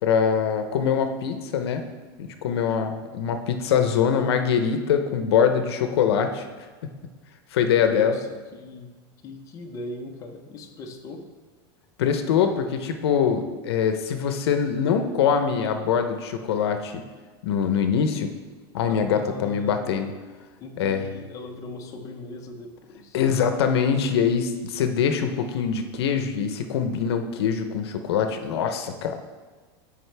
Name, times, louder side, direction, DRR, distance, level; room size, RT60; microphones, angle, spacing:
voice 1, 0.0-1.8 2.2-6.9 7.5-8.2 12.0-17.0 17.4-18.3 18.7-20.1 20.8-21.1 23.1-29.2, left 7 dB, 80° left, 7 dB, 0.8 m, -23 dB
voice 2, 7.9-8.9 9.2-11.3 18.9-20.1 20.6-23.2, left 2 dB, 25° left, 2 dB, 0.8 m, -39 dB
12.5 x 5.1 x 3.4 m, 1.4 s
supercardioid pair, 155°, 13 cm